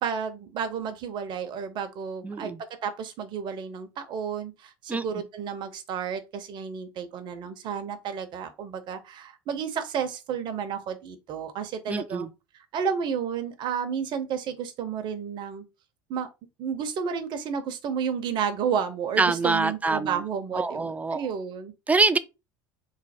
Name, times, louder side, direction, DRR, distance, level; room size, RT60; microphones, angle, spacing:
voice 1, 0.0-2.5 2.8-12.3 12.5-15.6 16.1-16.3 16.6-20.8 21.1-21.7, right 7 dB, 45° right, 0.7 m, -31 dB
voice 2, 2.2-2.6 4.9-5.1 11.9-12.3 19.2-20.2 20.5-21.3 21.9-22.2, right 3 dB, 15° right, 0.4 m, -25 dB
3.1 x 2.1 x 4.2 m
hypercardioid pair, 70°, 11 cm